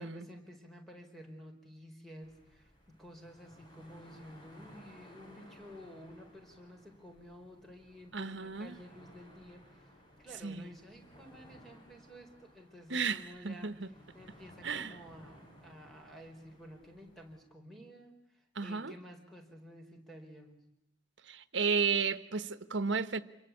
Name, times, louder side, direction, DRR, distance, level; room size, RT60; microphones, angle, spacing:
voice 1, 0.0-13.7 14.1-20.6, equal, ahead, 4.7 m, -52 dB
sound 1, 2.2-17.4, equal, 25° left, 7.4 m, -59 dB
voice 2, 8.1-8.8 10.4-10.7 12.9-13.9 14.6-14.9 18.6-18.9 21.3-23.2, right 5 dB, 70° right, 1.3 m, -33 dB
27.5 x 22.5 x 8.6 m
head